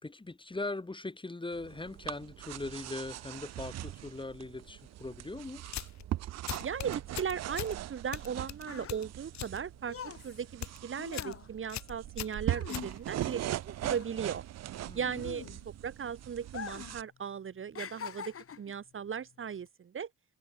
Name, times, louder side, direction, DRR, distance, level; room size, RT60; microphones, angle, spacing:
voice 1, 0.0-5.6 14.8-15.2, left 2 dB, 15° left, 3.3 m, -40 dB
sound 1, 1.5-17.0, right 13 dB, 60° right, 0.6 m, -40 dB
sound 2, 5.7-6.1 6.5-7.8 8.1-9.6 9.9-10.2 10.5-10.8 11.1-11.4 11.7-13.3, left 12 dB, 65° left, 1.0 m, -40 dB
voice 2, 6.6-10.0 10.2-14.4 14.9-20.1, right 7 dB, 45° right, 1.5 m, -37 dB
sound 3, 8.2-13.5 13.8-15.9 16.4-17.0 17.3-18.8 19.5-19.7, left 7 dB, 45° left, 3.6 m, -44 dB
cardioid pair, 90°, 30 cm